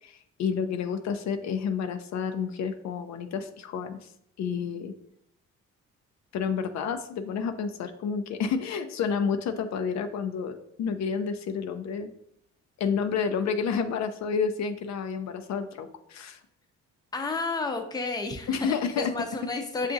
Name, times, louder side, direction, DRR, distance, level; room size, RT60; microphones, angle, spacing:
voice 1, 0.0-4.1 4.4-4.9 6.3-12.1 12.8-16.4 18.5-19.1, left 6 dB, 65° left, 7 dB, 0.5 m, -30 dB
voice 2, 17.1-19.9, left 3 dB, 15° left, 4 dB, 0.5 m, -31 dB
6.6 x 2.5 x 2.6 m, 0.72 s
cardioid pair, 90°, 30 cm